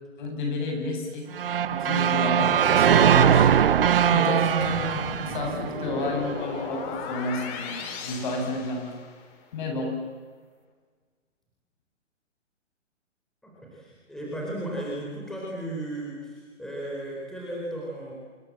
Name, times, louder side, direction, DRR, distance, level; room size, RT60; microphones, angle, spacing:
voice 1, 0.2-1.3 1.7-3.5 4.1-9.0 9.5-9.9, left 2 dB, 40° left, 2 dB, 8.0 m, -31 dB
sound 1, 1.4-6.4, right 8 dB, 50° right, 1.2 m, -21 dB
sound 2, 4.6-9.4, left 5 dB, 20° left, 3.2 m, -36 dB
voice 2, 13.4-18.1, right 1 dB, ahead, -4 dB, 4.5 m, -35 dB
27.0 x 25.5 x 7.7 m, 1.5 s
hypercardioid pair, 150°, 38 cm